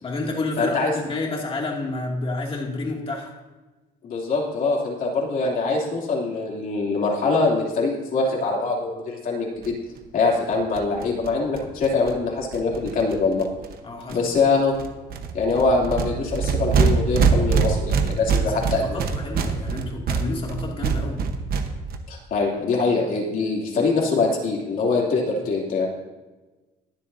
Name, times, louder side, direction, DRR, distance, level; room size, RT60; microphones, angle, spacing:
voice 1, 0.0-3.3 13.8-14.2 18.4-21.2, left 2 dB, 35° left, -1 dB, 2.4 m, -30 dB
voice 2, 0.6-0.9 4.0-9.8 10.1-13.5 14.1-14.8 15.3-19.0 22.1-25.9, left 3 dB, 55° left, -3 dB, 2.8 m, -23 dB
sound 1, 9.6-9.7 10.0-10.1 10.3-10.4 10.5-13.7 14.1-14.5 14.7-22.0, right 5 dB, 65° right, 1.1 m, -24 dB
22.5 x 7.5 x 2.7 m, 1.2 s
cardioid pair, 110°, 17 cm